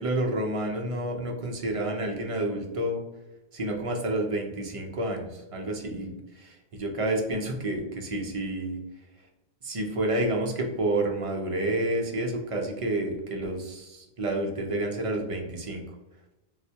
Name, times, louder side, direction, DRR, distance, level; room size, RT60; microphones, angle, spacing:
voice 1, 0.0-3.0 3.5-8.8 9.6-15.8, right 1 dB, 45° right, 1 dB, 0.5 m, -29 dB
4.0 x 2.1 x 2.7 m, 1.0 s
omnidirectional pair, 1.0 m